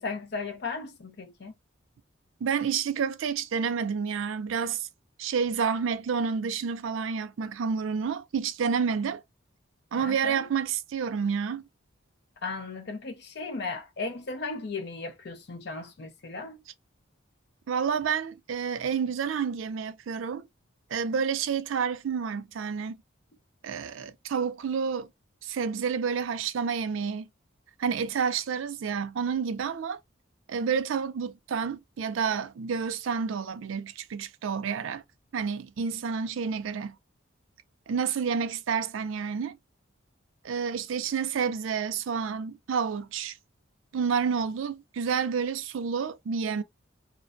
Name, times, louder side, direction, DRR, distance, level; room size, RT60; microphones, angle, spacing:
voice 1, 0.0-1.5 10.0-10.4 12.4-16.6, left 3 dB, 55° left, 0.5 m, -36 dB
voice 2, 2.4-4.9 5.2-9.2 9.9-11.6 17.7-20.4 20.9-23.0 23.6-25.1 25.4-27.3 27.8-30.0 30.5-35.0 35.3-37.0 37.9-39.5 40.4-43.3 43.9-46.6, right 6 dB, 75° right, 0.4 m, -29 dB
2.4 x 2.1 x 2.5 m
head